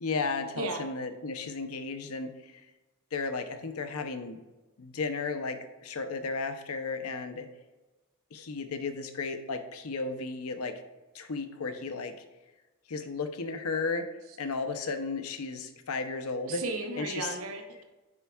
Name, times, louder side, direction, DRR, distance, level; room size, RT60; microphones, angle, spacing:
voice 1, 0.0-2.6 3.1-4.4 4.8-7.5 8.3-10.7 11.1-12.1 12.9-14.1 14.4-16.6 17.0-17.4, left 4 dB, 80° left, 8 dB, 0.7 m, -34 dB
voice 2, 16.5-17.8, right 3 dB, 70° right, 4 dB, 0.7 m, -35 dB
9.7 x 4.5 x 2.3 m, 1.1 s
head